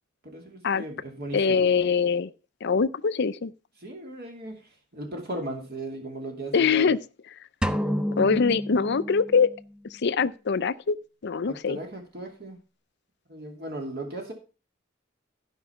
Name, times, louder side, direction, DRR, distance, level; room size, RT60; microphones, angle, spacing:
voice 1, 0.2-1.7 3.8-6.9 11.5-12.6 13.3-14.3, right 1 dB, 50° right, 2.7 m, -37 dB
voice 2, 1.3-2.3 2.6-3.5 6.5-7.0 8.2-9.5 9.9-11.0 11.2-11.8, left 5 dB, 60° left, 0.6 m, -23 dB
sound 1, 7.6-9.6, equal, 5° right, 0.5 m, -29 dB
14.0 x 5.5 x 5.6 m
head